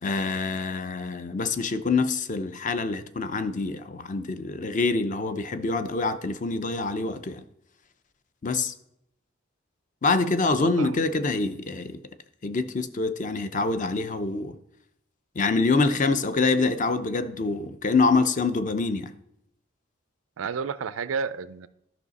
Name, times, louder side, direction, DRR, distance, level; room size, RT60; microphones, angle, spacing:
voice 1, 0.0-7.4 8.4-8.7 10.0-12.0 12.4-14.5 15.4-19.1, left 3 dB, 40° left, 0.5 m, -25 dB
voice 2, 10.4-11.1 20.4-21.7, right 6 dB, 85° right, 0.4 m, -32 dB
12.0 x 5.7 x 4.1 m
head